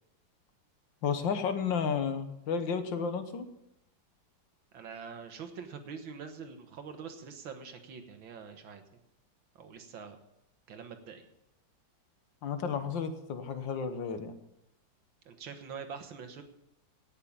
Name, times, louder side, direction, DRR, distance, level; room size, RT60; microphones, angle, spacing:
voice 1, 1.0-3.5 12.4-14.3, left 6 dB, 75° left, 9 dB, 1.8 m, -32 dB
voice 2, 4.7-8.8 9.6-10.2 10.7-11.3 15.3-16.4, right 6 dB, 90° right, 7 dB, 2.1 m, -44 dB
17.5 x 6.7 x 7.1 m, 0.84 s
omnidirectional pair, 2.1 m